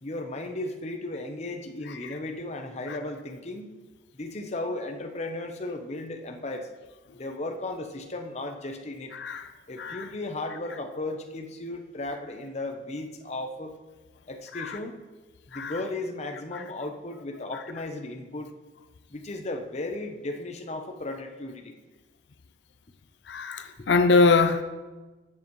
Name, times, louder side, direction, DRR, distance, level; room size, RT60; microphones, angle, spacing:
voice 1, 0.0-3.7 4.1-6.7 7.1-9.1 9.7-13.7 14.3-15.0 15.5-18.5 19.1-21.7, left 2 dB, 40° left, 0.8 m, -35 dB
voice 2, 23.3-24.6, left 4 dB, 85° left, 0.5 m, -22 dB
13.0 x 7.6 x 3.1 m
head